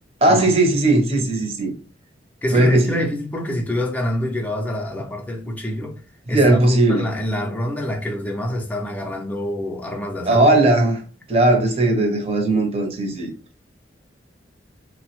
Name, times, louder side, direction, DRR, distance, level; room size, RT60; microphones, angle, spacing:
voice 1, 0.2-1.7 2.5-3.0 6.3-7.0 10.3-11.0 11.3-13.3, right 2 dB, 35° right, 0.6 m, -17 dB
voice 2, 2.4-6.0 6.3-10.6, left 1 dB, 10° left, 0.4 m, -26 dB
3.0 x 2.0 x 2.9 m
head